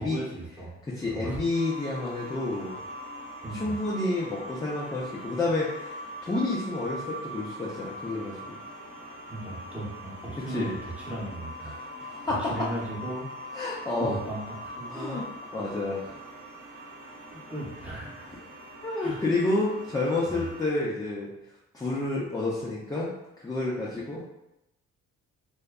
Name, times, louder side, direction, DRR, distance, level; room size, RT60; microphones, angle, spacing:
voice 1, 0.0-0.8 1.0-1.4 3.4-3.8 9.3-13.2 14.0-15.2 17.1-18.3 19.0-19.2 20.3-20.5, right 1 dB, 5° right, -6 dB, 0.8 m, -37 dB
voice 2, 0.8-2.8 3.5-8.6 10.5-10.7 11.6-12.4 13.5-14.1 14.9-15.2 15.5-16.2 18.8-21.3 21.7-24.2, left 2 dB, 15° left, -6 dB, 0.4 m, -30 dB
sound 1, 1.5-20.7, equal, 85° right, 0.8 m, -42 dB
2.6 x 2.2 x 2.2 m, 0.90 s
cardioid pair, 90°, 30 cm